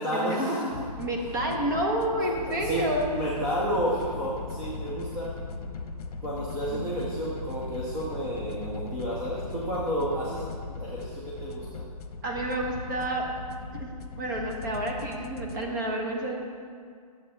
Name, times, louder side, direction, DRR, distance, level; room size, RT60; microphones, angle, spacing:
voice 1, 0.0-0.8 1.5-1.6 2.5-5.3 6.2-11.8, right 1 dB, 10° right, -7 dB, 0.5 m, -31 dB
sound 1, 0.7-15.6, left 3 dB, 70° left, 0.9 m, -38 dB
voice 2, 1.0-3.1 6.7-6.9 12.2-13.2 13.7-16.4, right 1 dB, 30° right, 1 dB, 1.2 m, -29 dB
11.5 x 7.4 x 4.2 m, 2.1 s
hypercardioid pair, 175°, 20 cm